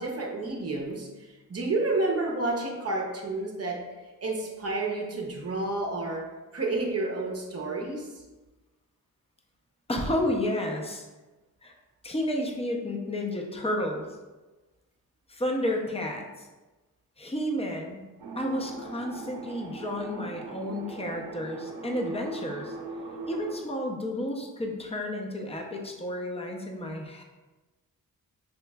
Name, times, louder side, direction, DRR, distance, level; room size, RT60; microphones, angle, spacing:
voice 1, 0.0-3.9 4.2-8.2, right 2 dB, 45° right, 0 dB, 0.7 m, -30 dB
voice 2, 9.9-11.1 11.6-11.7 12.0-14.1 15.3-16.5 17.2-18.0 18.4-22.7 23.2-27.2, left 1 dB, 15° left, 1 dB, 0.6 m, -31 dB
sound 1, 18.2-23.6, right 4 dB, 80° right, 0.6 m, -40 dB
5.6 x 3.0 x 2.3 m, 1.2 s
wide cardioid pair, 90°, 36 cm